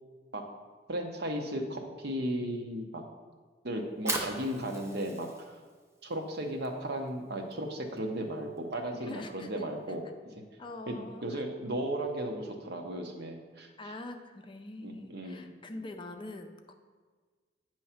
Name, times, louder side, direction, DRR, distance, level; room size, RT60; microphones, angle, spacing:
voice 1, 0.9-3.0 3.6-5.6 6.0-10.0 10.9-13.7 14.8-15.5, right 1 dB, 65° right, 3 dB, 0.9 m, -35 dB
Fire, 3.8-10.0, right 2 dB, 15° right, 0.7 m, -42 dB
voice 2, 8.9-9.5 9.9-10.0 10.6-11.4 13.8-16.7, left 2 dB, 30° left, 5 dB, 0.4 m, -44 dB
8.9 x 3.1 x 5.7 m, 1.5 s
head